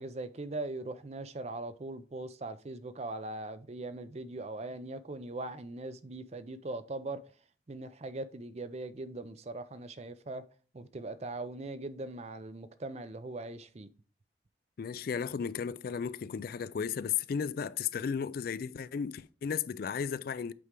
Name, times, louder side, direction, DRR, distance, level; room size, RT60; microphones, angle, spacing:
voice 1, 0.0-7.2 7.7-10.4 10.7-13.9, right 2 dB, 35° right, 0.5 m, -40 dB
voice 2, 14.8-20.5, left 7 dB, 50° left, 0.3 m, -34 dB
8.3 x 4.7 x 3.7 m
head